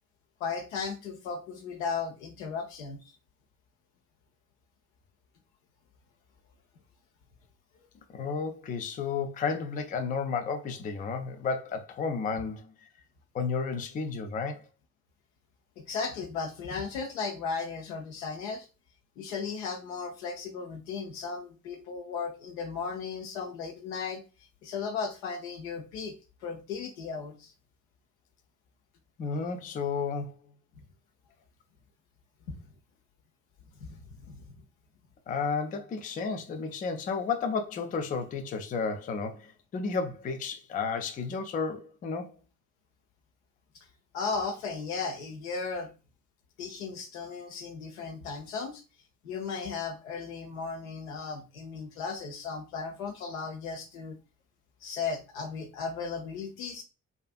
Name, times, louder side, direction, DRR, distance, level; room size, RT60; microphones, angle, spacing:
voice 1, 0.4-3.2 15.9-18.7 19.2-24.2 24.6-26.1 26.4-27.5 32.5-32.6 33.8-34.4 44.1-45.9 46.6-48.8 49.2-54.2 54.8-56.8, left 5 dB, 75° left, 0.7 m, -36 dB
voice 2, 8.1-12.9 13.3-14.6 29.2-30.4 35.3-42.4, left 5 dB, 20° left, 0.4 m, -32 dB
2.4 x 2.4 x 2.3 m
figure-of-eight pair, 40°, 42 cm